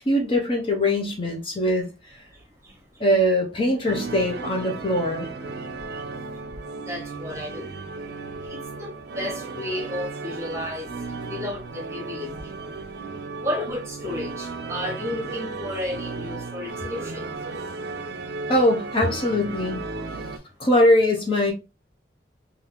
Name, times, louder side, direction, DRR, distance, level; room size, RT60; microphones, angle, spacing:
voice 1, 0.1-1.9 3.0-5.3 18.5-19.8 20.6-21.5, left 1 dB, 30° left, 1 dB, 0.5 m, -21 dB
voice 2, 2.3-3.0 4.9-5.0 5.5-8.0 8.4-12.6 12.9-17.5, left 1 dB, 15° right, 0 dB, 1.0 m, -34 dB
sound 1, 3.9-20.4, right 3 dB, 65° right, 0.4 m, -35 dB
3.5 x 2.4 x 2.9 m, 0.29 s
head